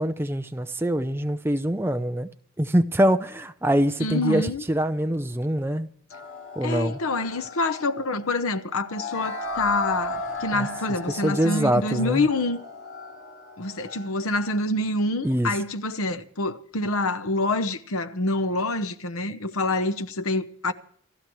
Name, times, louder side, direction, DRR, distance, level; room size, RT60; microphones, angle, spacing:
voice 1, 0.0-2.3 2.6-5.9 6.6-7.0 10.5-10.7 11.1-12.3 15.2-15.5, equal, 10° right, 0.6 m, -24 dB
voice 2, 4.0-4.6 6.6-12.6 13.6-20.7, left 2 dB, 90° left, 0.9 m, -26 dB
sound 1, 6.1-14.1, left 3 dB, 65° left, 2.9 m, -36 dB
28.0 x 12.0 x 3.1 m
head